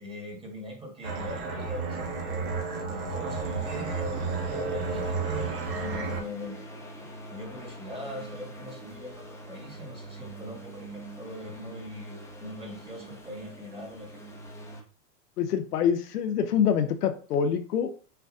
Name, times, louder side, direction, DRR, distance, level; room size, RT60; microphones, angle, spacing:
voice 1, 0.0-6.8 7.3-14.2, left 1 dB, 10° right, 1 dB, 1.4 m, -42 dB
sound 1, 1.0-6.2, right 4 dB, 65° right, 1.6 m, -31 dB
sound 2, 3.4-14.8, right 1 dB, 5° left, 0.7 m, -45 dB
voice 2, 15.4-17.9, left 8 dB, 80° left, 7 dB, 0.7 m, -25 dB
6.6 x 2.3 x 2.5 m, 0.39 s
hypercardioid pair, 115°, 46 cm